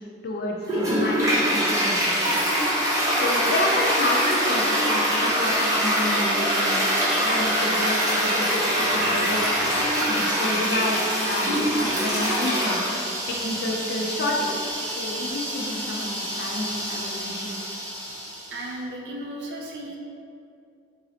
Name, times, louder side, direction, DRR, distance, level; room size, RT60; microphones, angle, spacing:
voice 1, 0.0-2.4 3.1-6.8 7.2-12.8 13.3-17.6, left 1 dB, 55° left, -1 dB, 0.4 m, -30 dB
Toilet flush, 0.6-18.6, equal, 20° right, 0.6 m, -24 dB
voice 2, 18.5-20.0, right 1 dB, 65° right, -1 dB, 0.4 m, -35 dB
3.8 x 2.0 x 2.7 m, 2.5 s
head